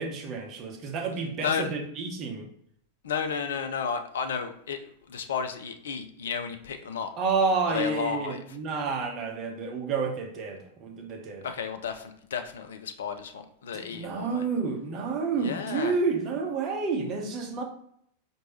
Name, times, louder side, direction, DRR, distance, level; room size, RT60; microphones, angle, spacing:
voice 1, 0.0-2.5 7.2-11.5 13.7-17.6, right 4 dB, 35° right, 3 dB, 0.7 m, -30 dB
voice 2, 1.4-1.7 3.0-7.1 7.7-8.6 11.4-14.4 15.4-16.0, left 6 dB, 65° left, 7 dB, 0.4 m, -33 dB
4.6 x 2.6 x 2.9 m, 0.70 s
figure-of-eight pair, 90°, 0 cm